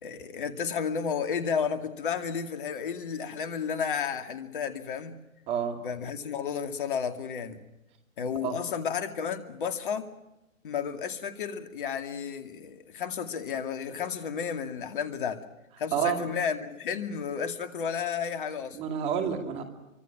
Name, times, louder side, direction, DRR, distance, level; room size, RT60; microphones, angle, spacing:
voice 1, 0.0-5.1 5.8-7.6 8.2-10.1 10.6-15.4 15.8-18.8, left 6 dB, 40° left, 8 dB, 2.4 m, -32 dB
voice 2, 5.5-5.8 8.4-8.6 15.9-16.2 18.7-19.6, right 8 dB, 15° right, 6 dB, 2.5 m, -29 dB
26.5 x 24.5 x 6.1 m, 0.95 s
figure-of-eight pair, 145°, 40 cm